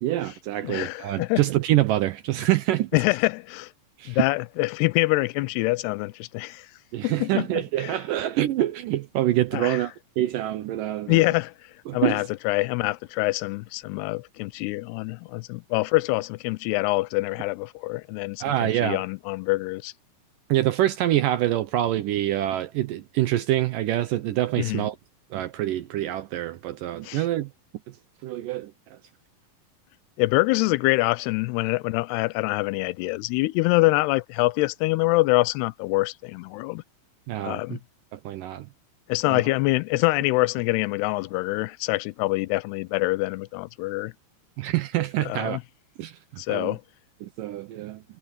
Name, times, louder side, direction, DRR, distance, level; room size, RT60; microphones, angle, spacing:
voice 1, 0.0-2.9 4.0-4.2 6.9-11.2 11.9-12.2 18.4-19.0 20.5-25.0 25.3-27.5 27.9-28.0 28.2-29.0 37.3-37.8 38.1-38.7 39.3-39.4 44.6-45.6 46.0-46.8 47.2-48.0, right 14 dB, 75° right, 2.0 m, -26 dB
voice 2, 0.6-1.4 2.9-3.7 4.1-6.7 7.0-8.0 9.5-9.8 11.1-19.9 24.6-24.9 27.0-27.2 30.2-36.8 37.4-37.8 39.1-44.1 45.2-45.6 46.4-46.8, left 22 dB, 90° left, 2.7 m, -25 dB
omnidirectional pair, 4.6 m